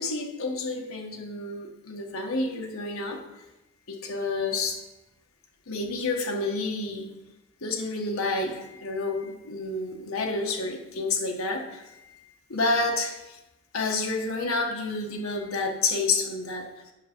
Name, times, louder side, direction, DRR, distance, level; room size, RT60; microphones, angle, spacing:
voice 1, 0.0-3.2 3.9-4.8 5.7-7.1 7.6-13.4 13.7-16.9, left 3 dB, 70° left, 2 dB, 1.2 m, -29 dB
8.6 x 6.1 x 5.1 m, 0.97 s
head